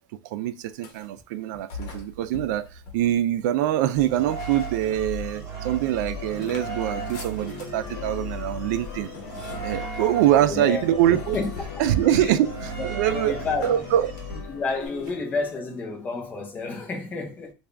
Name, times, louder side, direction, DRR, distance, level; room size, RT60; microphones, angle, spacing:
voice 1, 0.3-2.7 2.9-9.1 9.6-11.4 11.8-14.1, right 12 dB, 65° right, 0.4 m, -24 dB
sound 1, 0.7-1.2 1.7-3.6 4.1-5.2 5.6-15.2, left 3 dB, 50° left, 1.1 m, -44 dB
sound 2, 3.9-14.9, right 2 dB, 35° right, 1.3 m, -36 dB
sound 3, 6.1-16.1, left 11 dB, 70° left, 0.5 m, -42 dB
voice 2, 10.3-10.8 11.3-11.5 12.1-12.4 12.8-13.8 14.5-17.5, left 3 dB, 15° left, 0.7 m, -30 dB
3.6 x 2.4 x 3.3 m
supercardioid pair, 175°, 11 cm